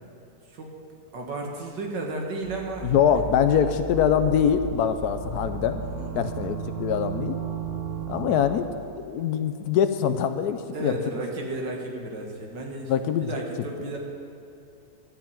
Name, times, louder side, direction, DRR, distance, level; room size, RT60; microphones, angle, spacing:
voice 1, 1.1-2.9 3.5-3.6 5.8-6.3 10.7-14.0, right 2 dB, 85° right, 0 dB, 2.3 m, -33 dB
sound 1, 2.4-8.7, right 6 dB, 45° right, 3.7 m, -35 dB
voice 2, 2.8-5.8 6.1-7.4 8.1-8.7 9.1-10.9 12.9-13.3, left 8 dB, 70° left, 10 dB, 1.1 m, -23 dB
13.5 x 5.7 x 8.8 m, 2.7 s
omnidirectional pair, 1.8 m